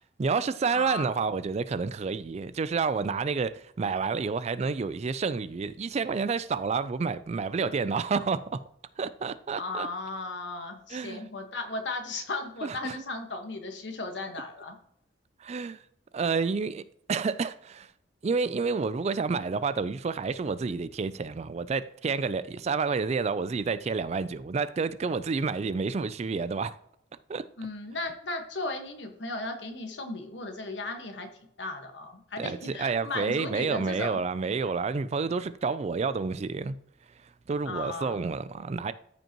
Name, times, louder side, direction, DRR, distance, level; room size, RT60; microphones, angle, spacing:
voice 1, 0.2-8.6 9.0-9.9 10.9-11.3 12.6-13.0 15.4-15.8 16.1-17.9 18.2-26.8 27.3-27.4 32.4-36.8 37.2-38.9, right 4 dB, 35° right, 0.3 m, -29 dB
voice 2, 0.7-1.2 9.5-14.8 27.6-31.3 31.6-34.2 37.6-38.2, left 2 dB, 70° left, 1.5 m, -36 dB
13.5 x 5.3 x 3.0 m
head